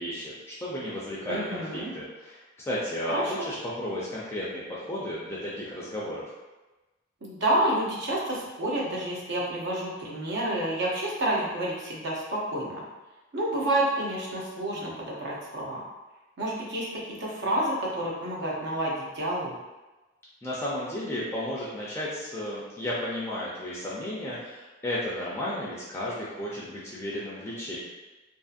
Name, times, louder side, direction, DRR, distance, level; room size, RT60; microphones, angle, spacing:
voice 1, 0.0-6.2 20.4-27.8, left 1 dB, 10° left, -7 dB, 0.4 m, -33 dB
voice 2, 1.3-1.9 3.1-3.5 7.2-12.8 13.3-15.8 16.4-19.5, right 1 dB, 60° right, -4 dB, 0.7 m, -29 dB
2.6 x 2.5 x 2.4 m, 1.1 s
head